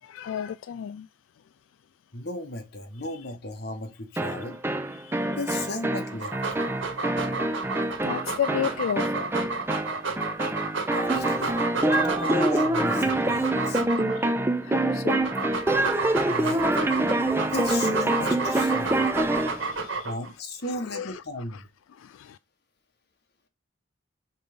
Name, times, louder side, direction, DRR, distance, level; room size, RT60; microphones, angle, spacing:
voice 1, 0.0-1.1 3.0-3.3 4.3-4.4 4.9-5.4 8.0-9.3 10.7-11.1 11.9-12.2 13.1-13.2 14.1-14.3 14.6-15.9 16.7-16.8 18.8-20.1 20.6-21.2 21.5-21.6 21.9-22.4, left 8 dB, 90° left, 0.3 m, -35 dB
voice 2, 2.1-4.6 5.3-6.3 10.9-11.5 11.9-13.8 16.3-16.7 17.5-19.1 20.0-21.7, left 2 dB, 55° left, 1.3 m, -35 dB
sound 1, 4.2-19.6, right 1 dB, 10° right, 0.5 m, -26 dB
Dog, 6.1-14.3 14.9-20.3, right 4 dB, 80° right, 1.8 m, -31 dB
5.4 x 3.8 x 5.1 m
head